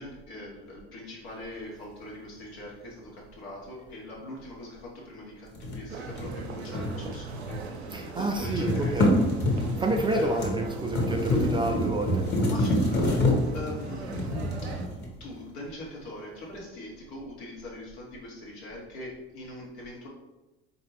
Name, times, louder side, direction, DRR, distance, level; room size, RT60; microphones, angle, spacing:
voice 1, 0.0-9.2 9.4-9.8 10.1-10.6 12.4-14.3 14.6-14.8 15.2-20.1, left 1 dB, 75° left, -4 dB, 1.3 m, -42 dB
sound 1, 5.5-7.8 8.1-15.4, left 1 dB, 30° left, 1.1 m, -27 dB
sound 2, 5.9-14.9, right 3 dB, 85° right, 0.5 m, -39 dB
voice 2, 7.9-9.1 9.7-12.3, right 2 dB, 15° right, 3 dB, 0.3 m, -29 dB
4.1 x 2.6 x 3.1 m, 1.1 s
figure-of-eight pair, 60°, 32 cm